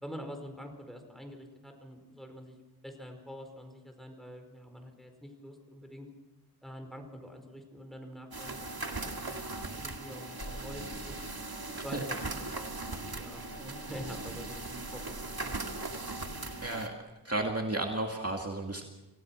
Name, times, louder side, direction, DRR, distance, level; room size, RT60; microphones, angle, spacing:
voice 1, 0.0-2.5 2.8-6.1 6.6-9.4 9.7-11.2 11.7-12.2 13.1-15.2 15.4-15.5 15.8-16.1, equal, ahead, 4 dB, 4.9 m, -46 dB
sound 1, 8.3-16.9, right 3 dB, 70° right, 2.0 m, -39 dB
sound 2, 10.3-16.8, equal, 50° left, 6.3 m, -49 dB
voice 2, 11.7-12.1 16.6-16.9 17.2-18.8, right 2 dB, 40° right, 2 dB, 2.1 m, -33 dB
27.5 x 17.0 x 6.1 m, 1.1 s
wide cardioid pair, 50°, 39 cm